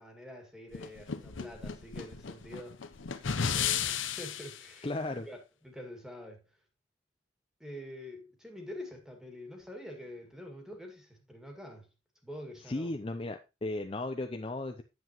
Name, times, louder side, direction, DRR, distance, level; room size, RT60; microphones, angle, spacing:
voice 1, 0.0-2.8 3.5-4.9 5.3-5.4 5.6-6.4 7.6-11.9 12.2-12.9, left 1 dB, 5° right, 1.9 m, -46 dB
sound 1, 0.7-4.6, left 7 dB, 85° left, 0.8 m, -34 dB
voice 2, 4.8-5.3 12.7-14.8, left 2 dB, 30° left, 0.5 m, -35 dB
9.3 x 7.8 x 3.0 m
head